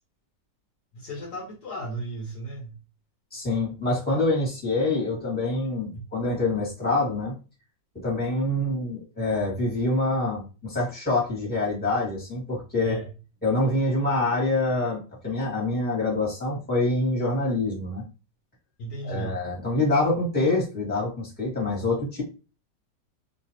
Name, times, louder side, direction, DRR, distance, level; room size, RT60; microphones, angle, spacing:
voice 1, 0.9-2.8 12.8-13.1 18.8-19.4, right 2 dB, 65° left, 0 dB, 1.3 m, -35 dB
voice 2, 3.3-7.3 7.9-13.0 13.4-18.0 19.0-22.2, left 2 dB, 5° left, -4 dB, 1.5 m, -26 dB
3.1 x 2.9 x 2.9 m, 0.32 s
omnidirectional pair, 2.0 m